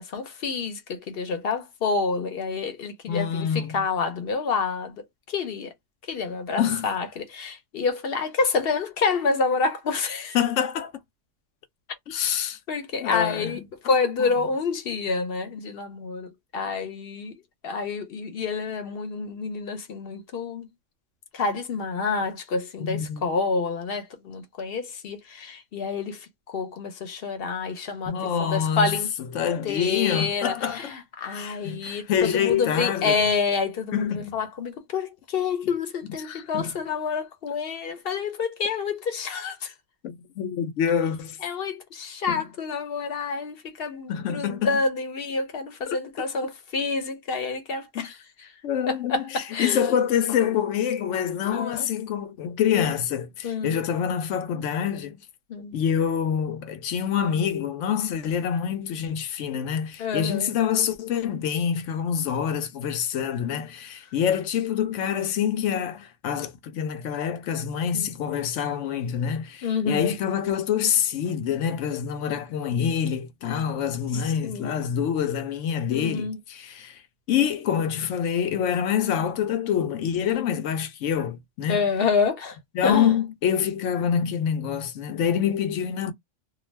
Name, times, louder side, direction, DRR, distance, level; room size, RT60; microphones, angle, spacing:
voice 1, 0.0-5.0 5.3-5.7 6.1-10.4 12.7-17.3 17.6-20.7 21.3-29.1 29.6-39.7 41.4-48.5 48.9-50.0 51.5-51.9 53.4-53.8 55.5-55.7 60.0-60.5 67.9-68.1 69.6-70.1 74.1-74.7 75.9-76.4 81.7-82.6 82.8-83.1, left 4 dB, 55° left, 0.9 m, -28 dB
voice 2, 3.1-3.8 6.6-6.9 10.3-10.9 12.1-12.6 13.0-13.9 22.8-23.2 28.1-29.0 29.3-30.9 31.3-33.1 33.9-34.3 36.3-36.7 40.0-41.4 42.3-42.4 44.1-44.8 47.9-48.1 48.6-55.2 55.7-77.0 77.3-81.8 82.7-86.1, left 8 dB, 80° left, 0.9 m, -26 dB
2.4 x 2.2 x 3.2 m
omnidirectional pair, 1.3 m